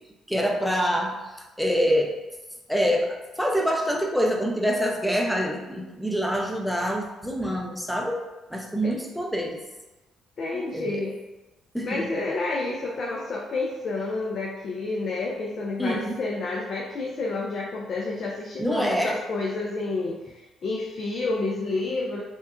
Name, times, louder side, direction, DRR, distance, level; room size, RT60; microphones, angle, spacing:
voice 1, 0.3-1.2 1.6-2.1 2.7-8.2 8.5-9.6 10.5-11.0 11.7-12.1 15.8-16.2 18.6-19.2, equal, ahead, 0 dB, 0.5 m, -25 dB
voice 2, 10.4-11.2 11.8-20.2 20.6-22.2, left 3 dB, 55° left, -2 dB, 0.3 m, -29 dB
2.9 x 2.1 x 2.3 m, 1.1 s
hypercardioid pair, 45°, 0 cm